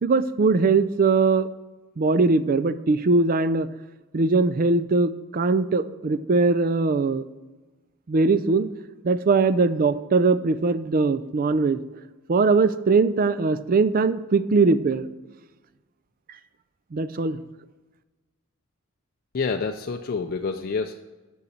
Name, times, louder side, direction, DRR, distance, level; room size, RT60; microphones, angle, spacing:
voice 1, 0.0-1.5 2.0-3.7 4.1-7.3 8.1-8.7 9.0-11.8 12.3-15.1 16.9-17.4, right 3 dB, 45° right, 14 dB, 0.4 m, -21 dB
voice 2, 19.3-20.9, left 4 dB, 45° left, 4 dB, 0.4 m, -27 dB
6.8 x 6.3 x 7.1 m, 1.2 s
head